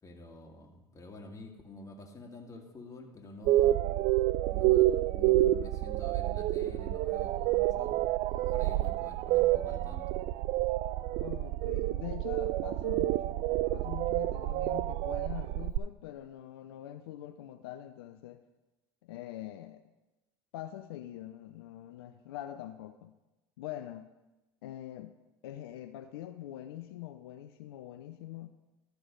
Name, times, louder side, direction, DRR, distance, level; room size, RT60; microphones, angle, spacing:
voice 1, 0.0-3.8 4.5-8.0 8.5-10.1, left 2 dB, 25° left, 2 dB, 1.9 m, -48 dB
sound 1, 3.5-15.8, right 15 dB, 55° right, 0.4 m, -28 dB
voice 2, 11.2-18.4 19.0-19.9 20.5-23.1 23.6-24.1 24.6-25.1 25.4-28.5, left 13 dB, 80° left, 8 dB, 0.5 m, -44 dB
13.0 x 6.1 x 5.2 m, 1.1 s
hypercardioid pair, 75°, 13 cm